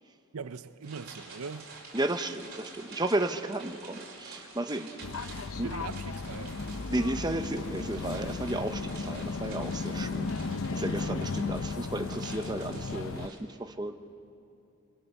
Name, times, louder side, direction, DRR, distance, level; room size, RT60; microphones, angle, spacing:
voice 1, 0.3-1.7 5.6-6.6, right 5 dB, 80° right, 0.7 m, -41 dB
sound 1, 0.8-13.4, right 4 dB, 45° right, 4.8 m, -49 dB
voice 2, 1.9-5.3 5.6-5.7 6.9-10.4 10.7-14.0, right 1 dB, 20° right, 0.8 m, -33 dB
sound 2, 5.0-13.3, left 4 dB, 70° left, 0.7 m, -35 dB
sound 3, 6.2-10.6, left 1 dB, 50° left, 1.2 m, -47 dB
26.0 x 25.0 x 7.0 m
head